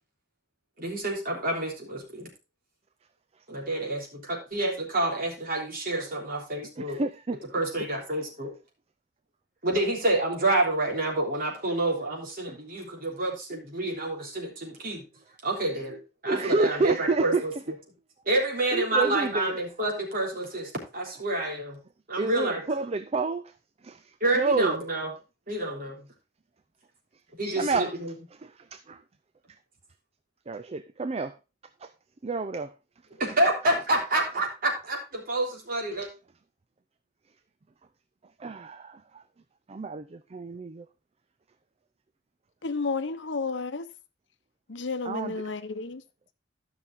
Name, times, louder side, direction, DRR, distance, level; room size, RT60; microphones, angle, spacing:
voice 1, 0.8-2.3 3.5-7.0 7.5-8.5 9.6-15.0 15.4-17.5 18.3-21.8 22.1-22.6 24.2-25.1 25.5-26.1 27.4-28.1 33.2-36.1, right 2 dB, 50° right, 3.5 m, -28 dB
voice 2, 6.8-7.4 12.5-12.6 16.3-17.4 18.7-19.5 22.2-23.4 23.8-24.8 27.6-27.9 28.4-29.0 30.5-31.3 31.8-31.9 32.2-32.7 38.4-39.2 39.7-40.8 45.0-45.4, right 3 dB, 35° right, 0.5 m, -29 dB
voice 3, 42.6-43.9 44.7-46.0, left 4 dB, 70° left, 0.9 m, -31 dB
13.5 x 5.9 x 3.5 m
head